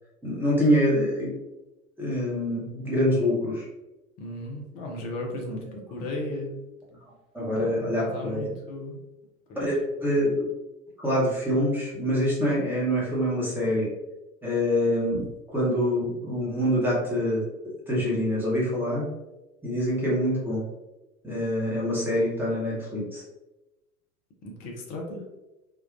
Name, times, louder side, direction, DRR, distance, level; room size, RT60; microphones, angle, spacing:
voice 1, 0.2-1.3 2.0-3.6 7.3-8.5 9.6-10.4 11.0-13.9 14.4-17.4 17.9-19.1 19.6-20.6 21.2-23.2, equal, 5° right, -7 dB, 0.9 m, -25 dB
voice 2, 4.2-5.6 5.9-6.5 7.5-8.9 9.5-10.2 24.4-25.2, left 1 dB, 20° left, 0 dB, 0.4 m, -36 dB
3.6 x 2.2 x 2.4 m, 1.0 s
figure-of-eight pair, 85°, 44 cm